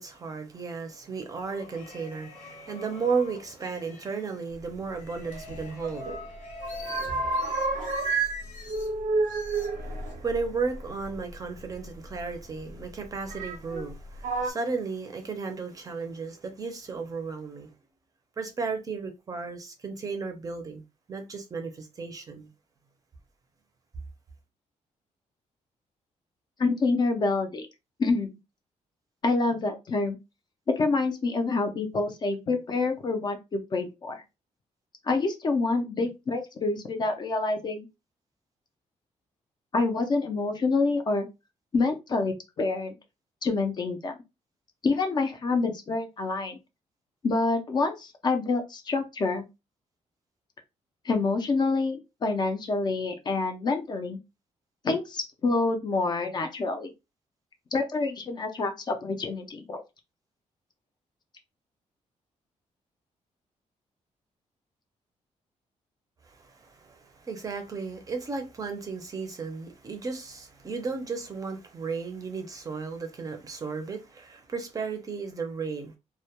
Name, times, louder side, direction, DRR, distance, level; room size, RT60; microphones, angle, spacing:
voice 1, 0.0-6.3 6.6-7.4 9.8-17.7 18.4-20.8 21.1-22.5 66.2-75.9, right 4 dB, 30° right, 0.5 m, -34 dB
sound 1, 1.4-4.4 5.0-8.9 9.3-10.1, left 4 dB, 85° left, 0.7 m, -44 dB
sound 2, 5.3-6.2 6.5-8.4 8.7-11.2 12.2-12.3 13.3-13.9 14.2-14.5, right 3 dB, 90° right, 0.5 m, -30 dB
voice 2, 26.6-27.7 28.0-28.4 29.2-30.2 30.7-34.2 35.1-37.9 39.7-41.3 41.7-43.0 43.4-44.2 44.8-46.6 47.2-49.4 51.0-54.2 54.8-56.9 57.7-59.8, left 3 dB, 35° left, 0.4 m, -27 dB
2.1 x 2.1 x 2.8 m
wide cardioid pair, 165°, 13 cm